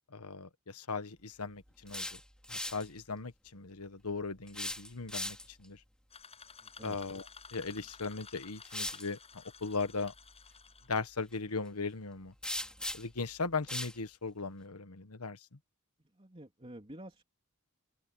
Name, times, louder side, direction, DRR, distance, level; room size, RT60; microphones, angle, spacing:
voice 1, 0.1-2.2 2.5-5.8 6.8-7.2 7.5-9.2 9.6-10.1 10.9-12.3 12.9-15.4, left 4 dB, 90° left, 1.4 m, -38 dB
sound 1, 1.7-2.9 4.5-5.6 7.7-7.9 8.6-9.1 12.4-13.2 13.7-14.0, left 1 dB, 5° left, 2.5 m, -39 dB
sound 2, 6.1-11.1, left 6 dB, 30° left, 7.0 m, -53 dB
voice 2, 6.6-7.0 16.1-17.2, right 1 dB, 25° right, 3.5 m, -49 dB
open air
head